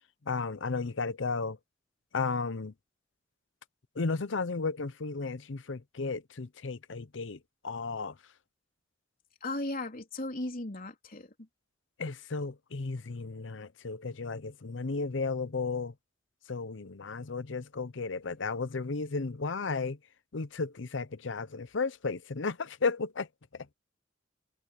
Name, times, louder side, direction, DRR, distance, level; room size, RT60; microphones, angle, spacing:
voice 1, 0.3-1.6 2.1-2.7 3.9-7.4 7.6-8.2 12.0-15.9 16.5-20.0 20.3-23.3 23.5-23.7, left 4 dB, 80° left, 0.7 m, -34 dB
voice 2, 9.4-11.3, left 2 dB, 50° left, 3.6 m, -36 dB
head